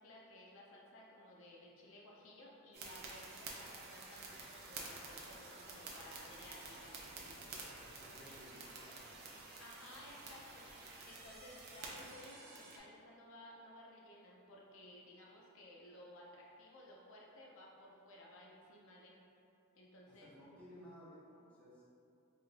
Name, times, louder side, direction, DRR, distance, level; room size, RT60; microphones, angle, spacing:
voice 1, 0.0-7.3 8.2-8.4 9.6-10.7 11.1-19.2 19.8-20.3, left 1 dB, 60° left, -3 dB, 0.5 m, -57 dB
sound 1, 2.7-12.8, right 3 dB, 50° right, 0.5 m, -50 dB
voice 2, 7.8-9.0 20.1-21.8, equal, 5° left, -9 dB, 0.6 m, -57 dB
4.8 x 2.5 x 2.5 m, 2.7 s
head